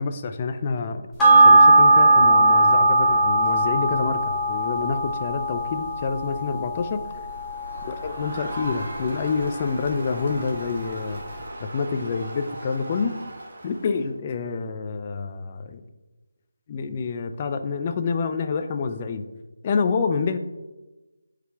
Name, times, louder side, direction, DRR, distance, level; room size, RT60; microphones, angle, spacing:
voice 1, 0.0-7.2 7.8-11.2 11.6-13.1 13.6-15.8 16.7-19.2 19.6-20.4, left 5 dB, 20° left, 7 dB, 0.4 m, -27 dB
sound 1, 1.2-9.9 10.3-10.4, right 2 dB, 5° left, 0.9 m, -19 dB
Crowd, 7.3-14.1, right 1 dB, 40° right, 1.4 m, -38 dB
9.3 x 4.9 x 3.4 m, 1.1 s
figure-of-eight pair, 175°, 0 cm